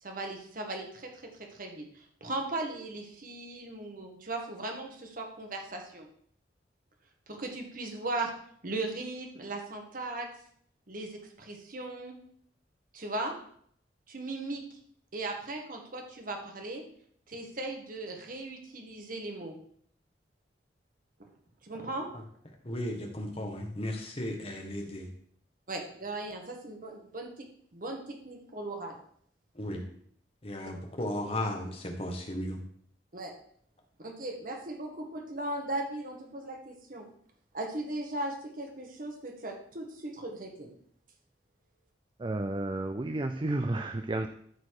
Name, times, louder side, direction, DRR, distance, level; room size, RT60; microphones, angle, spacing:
voice 1, 0.0-1.1 1.4-6.1 7.3-8.3 8.6-10.3 10.9-12.2 12.9-13.3 14.1-14.6 15.1-16.8 17.3-19.6 21.6-22.1 25.7-27.3 27.7-29.0 33.1-33.3 34.0-37.1 37.5-40.7, right 2 dB, 50° right, 2 dB, 1.7 m, -37 dB
voice 2, 22.6-25.1 29.5-29.9 30.4-32.6, left 1 dB, 35° left, 2 dB, 1.7 m, -35 dB
voice 3, 42.2-44.3, right 2 dB, 25° right, 7 dB, 0.4 m, -31 dB
13.0 x 4.4 x 4.8 m, 0.64 s
head